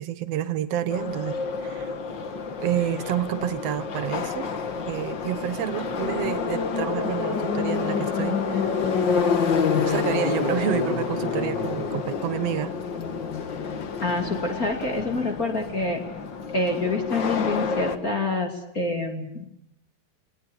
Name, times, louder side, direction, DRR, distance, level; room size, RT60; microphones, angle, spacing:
voice 1, 0.0-1.9 2.6-4.5 4.9-8.8 9.1-12.7, right 11 dB, 75° right, 12 dB, 1.4 m, -29 dB
Subway metro underground, 0.9-18.0, left 5 dB, 55° left, 1.3 m, -28 dB
voice 2, 14.0-16.0 16.5-19.5, left 2 dB, 25° left, 3 dB, 2.6 m, -27 dB
29.5 x 21.0 x 7.3 m, 0.80 s
omnidirectional pair, 4.4 m